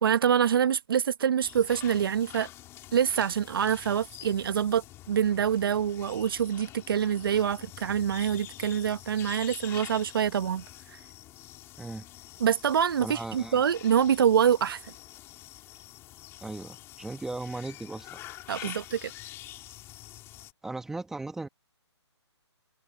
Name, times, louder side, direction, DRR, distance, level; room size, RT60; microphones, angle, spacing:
voice 1, 0.0-2.5 2.9-11.0 12.4-14.8 18.5-19.1, right 8 dB, 50° right, 1.1 m, -26 dB
sound 1, 1.4-20.5, left 15 dB, 15° left, 4.6 m, -47 dB
voice 2, 13.0-13.6 16.4-18.2 18.6-18.7 20.6-21.5, right 2 dB, 5° right, 1.4 m, -37 dB
hypercardioid pair, 155°, 15 cm